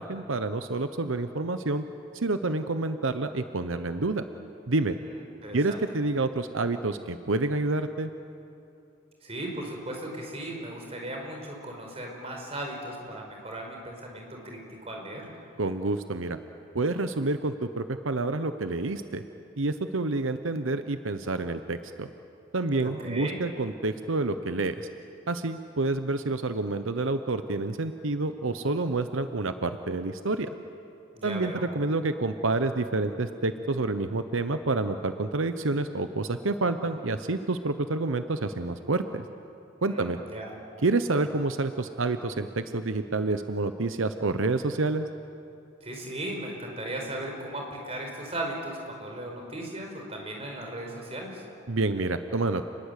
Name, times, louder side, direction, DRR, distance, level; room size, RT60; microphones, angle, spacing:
voice 1, 0.0-1.8 2.1-4.2 4.7-5.0 5.5-8.1 15.6-16.4 16.7-19.2 19.6-22.1 22.5-24.9 25.3-30.5 31.2-39.2 39.8-40.2 40.8-45.1 51.7-52.6, right 2 dB, 85° right, 9 dB, 0.9 m, -28 dB
voice 2, 5.0-5.8 9.2-15.3 22.8-23.3 31.1-31.6 39.8-40.5 45.8-51.4, right 1 dB, 30° right, 1 dB, 4.9 m, -37 dB
29.0 x 21.0 x 8.4 m, 2.8 s
head